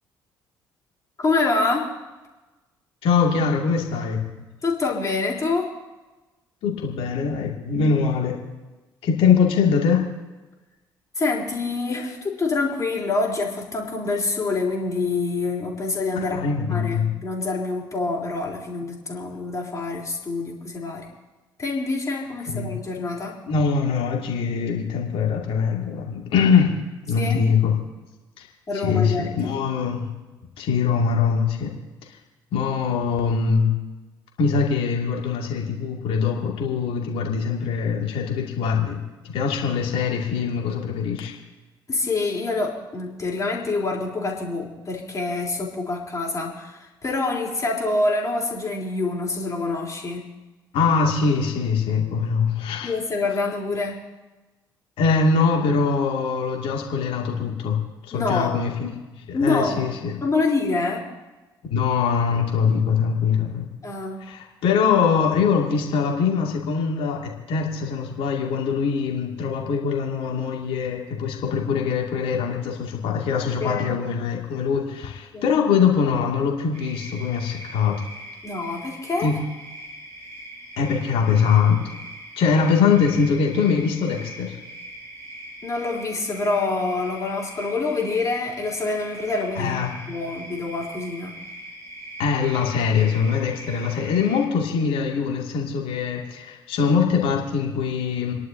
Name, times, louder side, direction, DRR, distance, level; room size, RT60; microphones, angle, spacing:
voice 1, 1.2-1.9 4.6-5.7 11.2-16.4 16.7-21.1 21.6-23.4 27.2-27.4 28.7-29.6 41.9-50.3 52.8-54.0 58.1-58.5 59.3-59.9 60.2-61.0 63.8-64.2 73.6-74.0 75.3-75.5 78.4-79.3 85.6-89.8 90.1-91.3, left 3 dB, 30° left, -2 dB, 3.8 m, -26 dB
voice 2, 3.0-4.4 6.6-8.4 9.0-10.0 16.1-17.1 22.5-22.7 23.5-26.7 27.1-27.7 28.4-28.5 28.7-30.1 30.6-31.7 32.5-33.7 34.4-39.0 39.2-41.3 50.7-52.9 55.0-57.8 58.1-58.9 59.3-60.2 61.7-63.7 64.2-77.9 79.2-79.3 80.8-81.8 82.4-84.6 89.6-89.9 92.2-98.3, left 6 dB, 55° left, 0 dB, 2.5 m, -22 dB
sound 1, 76.7-94.4, right 1 dB, 65° right, 5.7 m, -41 dB
30.0 x 11.0 x 2.8 m, 1.2 s
figure-of-eight pair, 50°, 11 cm